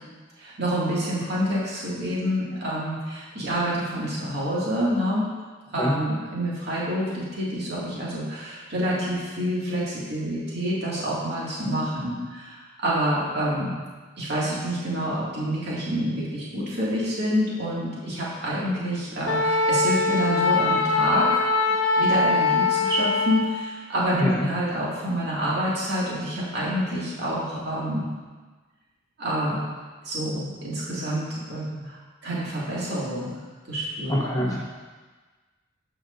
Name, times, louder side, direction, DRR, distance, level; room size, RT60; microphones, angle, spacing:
voice 1, 0.4-5.2 5.7-13.8 14.2-21.4 22.0-28.1 29.2-29.6 30.0-32.0 32.2-33.3 33.7-34.6, equal, 55° right, -7 dB, 2.2 m, -27 dB
Wind instrument woodwind instrument, 19.3-23.5, left 3 dB, 75° left, 0.6 m, -22 dB
voice 2, 24.1-24.5 34.1-34.6, equal, 15° left, -4 dB, 0.9 m, -25 dB
13.5 x 5.0 x 2.6 m, 1.3 s
head